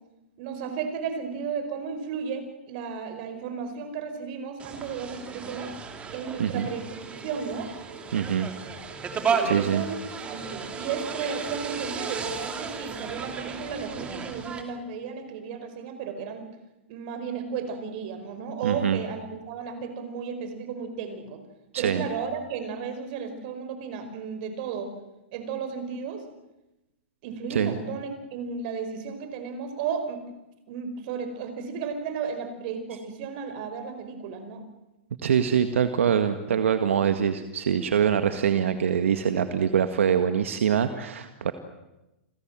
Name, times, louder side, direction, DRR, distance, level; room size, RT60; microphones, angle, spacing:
voice 1, 0.4-5.7 6.1-6.9 7.2-7.7 9.2-16.5 16.9-21.4 21.8-24.9 25.3-26.2 27.2-30.2 30.7-34.6, right 6 dB, 45° right, 8 dB, 5.3 m, -34 dB
sound 1, 4.6-14.6, right 5 dB, 15° right, 3.0 m, -34 dB
voice 2, 8.1-8.5 9.4-9.8 18.6-19.0 21.7-22.1 27.5-27.8 35.2-41.5, right 8 dB, 80° right, 9 dB, 1.9 m, -24 dB
29.5 x 22.5 x 7.6 m, 0.98 s
hypercardioid pair, 145°, 7 cm